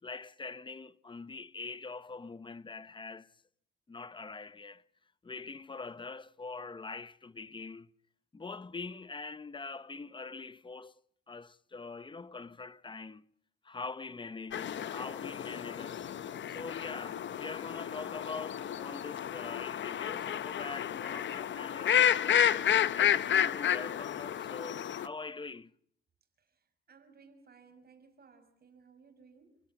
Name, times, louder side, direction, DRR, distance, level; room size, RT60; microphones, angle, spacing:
voice 1, 0.0-3.3 3.9-4.8 5.2-7.9 8.3-11.0 11.3-13.2 13.6-16.1 16.5-22.5 22.9-25.7, left 4 dB, 25° left, 1.0 m, -44 dB
sound 1, 14.5-25.1, left 9 dB, 80° left, 1.0 m, -31 dB
voice 2, 26.4-29.6, right 5 dB, 55° right, 6.1 m, -60 dB
30.0 x 17.0 x 8.5 m
wide cardioid pair, 125°, 19 cm